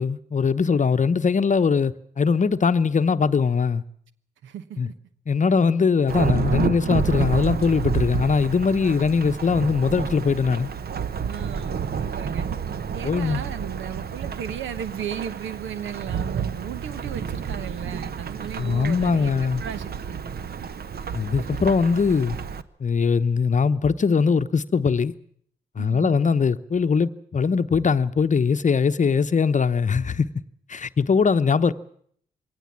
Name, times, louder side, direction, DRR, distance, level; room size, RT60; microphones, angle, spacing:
voice 1, 0.0-3.8 4.8-4.9 5.3-10.7 13.0-13.4 18.6-19.6 21.1-22.4 22.8-25.1 25.8-30.3 30.7-31.7, left 5 dB, 40° left, 0.9 m, -21 dB
voice 2, 4.4-4.9 8.8-9.0 11.2-12.5 12.9-19.3 19.6-20.2 25.8-26.2, right 9 dB, 75° right, 1.1 m, -35 dB
Thunderstorm / Rain, 6.1-22.6, right 7 dB, 50° right, 1.0 m, -30 dB
21.5 x 17.5 x 7.3 m
hypercardioid pair, 45°, 20 cm